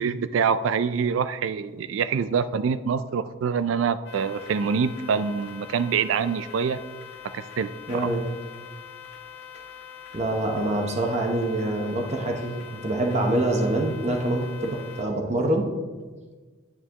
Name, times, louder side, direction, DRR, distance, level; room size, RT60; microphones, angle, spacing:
voice 1, 0.0-6.8 7.3-7.7, right 6 dB, 75° right, 13 dB, 0.3 m, -25 dB
sound 1, 4.1-15.1, left 8 dB, 60° left, 2.4 m, -43 dB
voice 2, 7.9-8.2 10.1-15.7, right 1 dB, 35° right, 2 dB, 0.8 m, -25 dB
9.2 x 8.7 x 2.9 m, 1.4 s
head